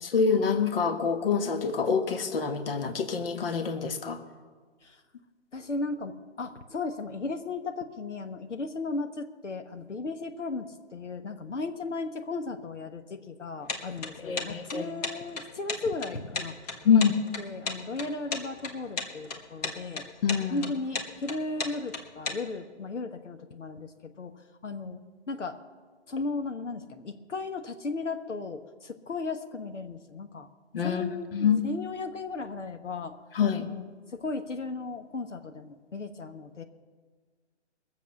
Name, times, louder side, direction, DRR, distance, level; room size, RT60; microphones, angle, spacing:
voice 1, 0.0-4.2 14.2-14.9 16.8-17.1 20.2-20.7 30.7-31.7 33.3-33.7, left 6 dB, 50° left, 8 dB, 1.4 m, -26 dB
voice 2, 5.5-17.0 17.4-20.0 20.5-24.3 24.6-25.0 25.3-25.6 26.1-30.5 30.8-33.1 33.7-33.8 34.1-36.6, left 3 dB, 85° left, 7 dB, 1.3 m, -36 dB
sound 1, 13.7-22.4, left 4 dB, 35° left, 1.4 m, -34 dB
20.5 x 7.2 x 7.0 m, 1.5 s
hypercardioid pair, 155°, 35 cm